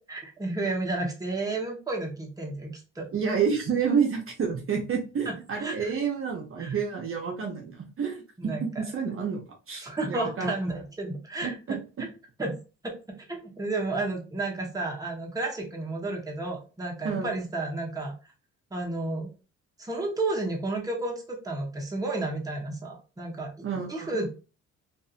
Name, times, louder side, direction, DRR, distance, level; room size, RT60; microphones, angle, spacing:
voice 1, 0.0-3.1 5.3-5.9 6.6-6.8 8.4-8.8 9.8-12.1 12.4-12.6 12.8-18.1 18.7-19.3 19.8-23.5 23.9-24.3, right 2 dB, 10° right, -1 dB, 0.9 m, -32 dB
voice 2, 3.1-9.4 9.7-10.5 11.4-11.8 17.0-17.3 23.6-24.1, right 6 dB, 45° right, 1 dB, 0.7 m, -29 dB
2.5 x 2.5 x 2.4 m, 0.33 s
cardioid pair, 90°, 30 cm